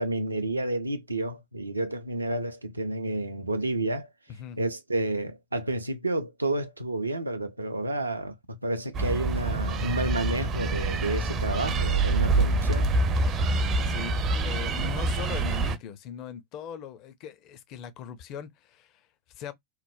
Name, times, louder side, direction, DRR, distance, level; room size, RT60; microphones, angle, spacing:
voice 1, 0.0-4.1 4.6-13.0, right 2 dB, 80° right, 0.5 m, -30 dB
sound 1, 8.9-15.8, right 2 dB, 30° right, 0.5 m, -26 dB
voice 2, 13.8-19.5, left 9 dB, 40° left, 0.5 m, -40 dB
3.0 x 2.1 x 2.2 m
figure-of-eight pair, 90°, 0 cm